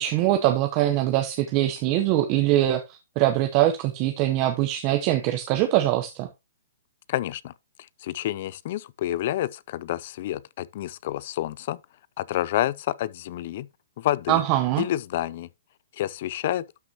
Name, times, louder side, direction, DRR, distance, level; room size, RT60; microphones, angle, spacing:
voice 1, 0.0-6.3 14.3-14.8, right 14 dB, 35° right, 0.9 m, -23 dB
voice 2, 7.1-7.5 8.0-11.8 12.2-13.7 14.0-14.4 14.8-15.5 16.0-16.6, left 13 dB, 50° left, 0.4 m, -28 dB
12.0 x 5.9 x 2.9 m
hypercardioid pair, 145°, 0 cm